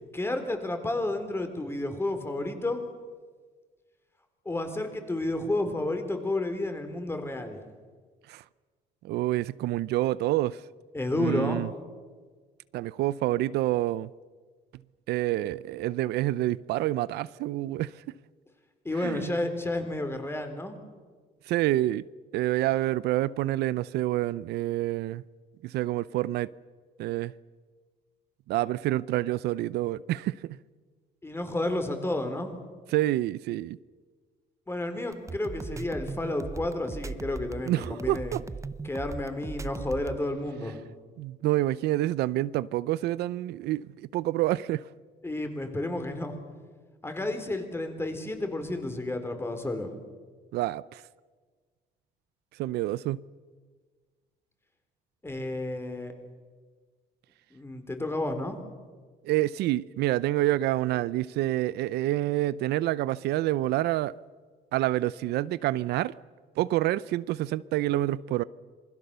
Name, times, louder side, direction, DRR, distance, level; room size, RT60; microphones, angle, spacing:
voice 1, 0.1-2.9 4.5-7.6 10.9-11.6 18.8-20.8 31.2-32.5 34.7-38.4 38.8-40.8 45.2-46.4 47.0-49.9 55.2-56.1 57.5-58.6, left 2 dB, 15° left, 3.8 m, -31 dB
voice 2, 9.0-10.6 11.2-11.7 12.7-14.1 15.1-18.0 19.0-19.3 21.5-22.0 22.3-25.2 25.6-26.5 27.0-27.3 28.5-30.6 32.9-33.8 37.6-38.4 41.2-44.8 50.5-51.0 52.6-53.2 59.2-64.1 64.7-66.1 66.6-68.4, right 15 dB, 80° right, 0.6 m, -27 dB
sound 1, 35.1-40.2, right 4 dB, 20° right, 0.7 m, -38 dB
27.0 x 21.0 x 6.8 m
cardioid pair, 110°, 17 cm